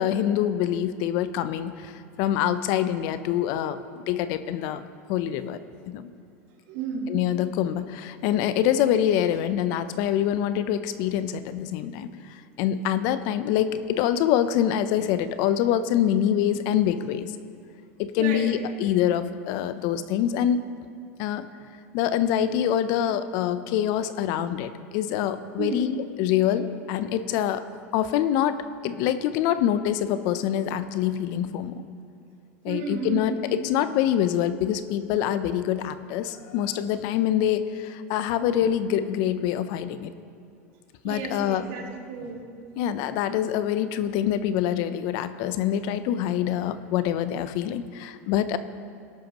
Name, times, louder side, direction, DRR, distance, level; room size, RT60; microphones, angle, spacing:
voice 1, 0.0-4.8 5.1-5.6 5.9-6.1 7.1-17.3 18.0-20.6 21.2-21.5 21.9-27.6 27.9-31.8 32.6-40.1 41.0-41.7 42.8-48.6, left 10 dB, 60° left, 12 dB, 0.7 m, -25 dB
voice 2, 6.7-7.1 18.2-18.5 25.6-25.9 32.7-33.4 41.0-42.5, right 5 dB, 60° right, 0 dB, 2.5 m, -32 dB
18.0 x 11.5 x 3.1 m, 2.5 s
hypercardioid pair, 100°, 8 cm